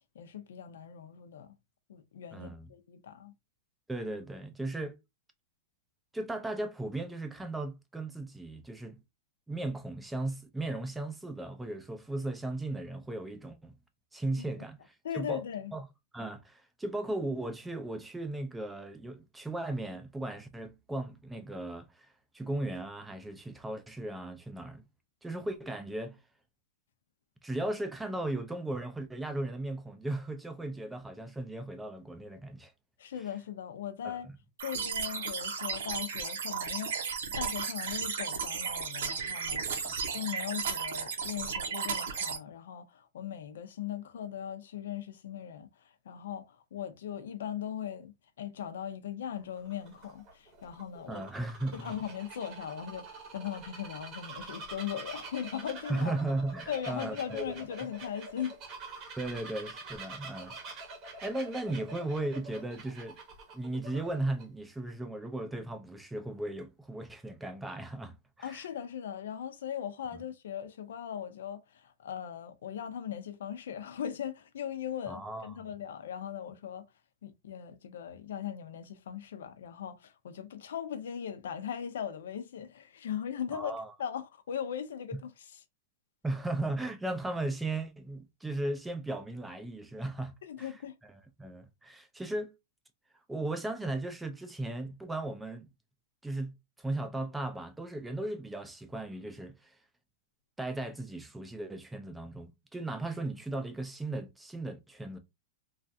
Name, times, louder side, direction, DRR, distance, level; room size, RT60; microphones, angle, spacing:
voice 1, 0.1-1.5 1.9-3.3 14.4-14.5 15.0-15.7 33.0-34.3 34.6-51.2 51.7-56.2 56.7-58.6 68.4-76.9 77.2-85.3 90.4-90.9, left 9 dB, 85° left, 0.5 m, -39 dB
voice 2, 2.3-2.7 3.9-5.0 6.1-9.0 9.5-13.7 14.1-14.8 15.1-15.4 15.7-15.9 16.1-24.8 25.2-26.2 27.4-32.7 34.0-34.2 39.8-40.0 51.1-52.0 55.9-57.6 59.2-60.5 61.2-63.2 63.5-68.7 70.1-70.2 75.1-75.7 83.5-83.9 86.2-90.3 90.6-90.8 91.0-91.1 91.4-92.5 93.3-95.7 96.2-96.5 96.8-99.7 100.6-105.2, right 2 dB, 5° right, 0.3 m, -36 dB
sound 1, 34.6-42.4, right 6 dB, 80° right, 0.7 m, -34 dB
Bird vocalization bird call bird song, 49.4-64.4, right 3 dB, 25° right, 0.8 m, -46 dB
3.2 x 2.4 x 2.6 m
supercardioid pair, 175°, 0 cm